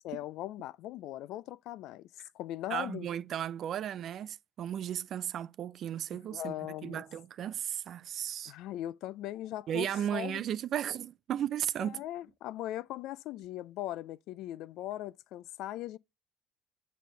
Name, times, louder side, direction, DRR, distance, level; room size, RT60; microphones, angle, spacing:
voice 1, 0.0-2.1 2.3-3.1 6.3-7.0 8.5-10.4 11.8-16.0, left 14 dB, 75° left, 0.3 m, -39 dB
voice 2, 2.7-6.5 6.8-8.5 9.7-12.0, right 10 dB, 60° right, 0.5 m, -35 dB
7.4 x 4.2 x 3.8 m
supercardioid pair, 85°, 0 cm